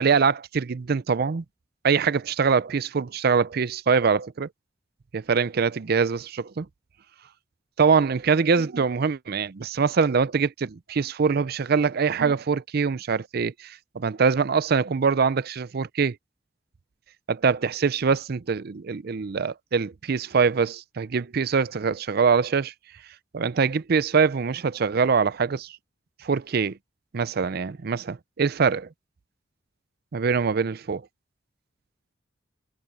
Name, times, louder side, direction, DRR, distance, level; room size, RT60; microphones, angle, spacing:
voice 1, 0.0-1.4 1.8-4.5 5.1-6.7 7.8-16.2 17.3-22.7 23.3-25.8 26.2-26.8 27.1-28.9 30.1-31.0, right 5 dB, 55° right, 0.5 m, -23 dB
head